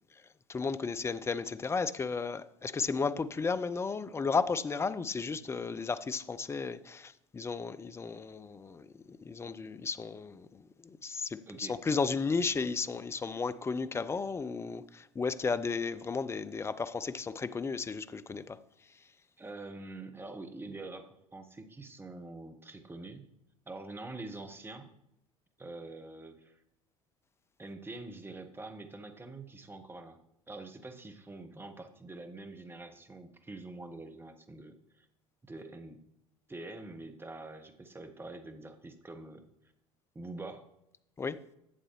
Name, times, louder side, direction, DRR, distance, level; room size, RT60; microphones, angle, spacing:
voice 1, 0.5-18.6 18.9-19.0 41.2-41.4, left 4 dB, 15° left, 0.4 m, -34 dB
voice 2, 19.4-23.3 23.7-24.9 25.6-26.6 27.6-30.2 30.5-35.1 35.4-36.0 36.5-39.5 40.1-40.7, right 2 dB, 10° right, 1.0 m, -45 dB
11.0 x 7.9 x 3.0 m
figure-of-eight pair, 70°, 18 cm